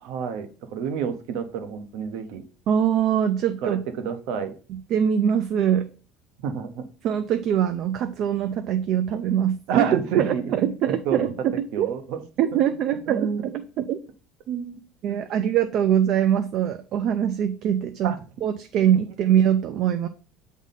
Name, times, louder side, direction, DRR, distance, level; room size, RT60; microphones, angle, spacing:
voice 1, 0.0-2.4 3.6-4.5 6.4-6.8 9.7-10.4 11.1-11.4 11.7-12.2 12.5-12.6 13.1-13.4 15.1-15.2 18.0-18.2, right 7 dB, 65° right, 8 dB, 0.9 m, -29 dB
voice 2, 2.7-3.8 4.9-5.9 7.0-11.9 12.4-14.0 14.5-18.1 18.4-20.1, right 9 dB, 45° right, 8 dB, 0.4 m, -23 dB
7.3 x 3.6 x 4.0 m, 0.38 s
cardioid pair, 180°, 0 cm